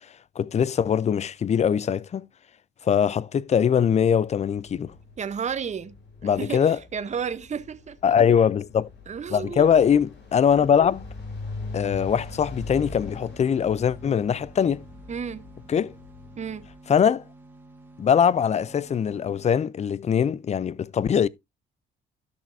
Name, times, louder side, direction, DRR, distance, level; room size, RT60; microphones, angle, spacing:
voice 1, 0.4-2.3 2.8-4.9 6.2-6.8 8.0-8.9 9.3-11.0 11.7-14.8 15.7-15.9 16.9-17.2 18.0-21.3, left 8 dB, 35° left, 0.4 m, -22 dB
sound 1, 3.7-16.7, left 2 dB, 60° left, 3.0 m, -41 dB
voice 2, 5.2-5.9 6.2-8.1 9.1-9.7 15.1-15.4 16.4-16.7, right 7 dB, 35° right, 0.8 m, -32 dB
sound 2, 12.9-19.4, right 2 dB, 10° right, 2.0 m, -50 dB
13.0 x 5.9 x 2.6 m
cardioid pair, 90°, 20 cm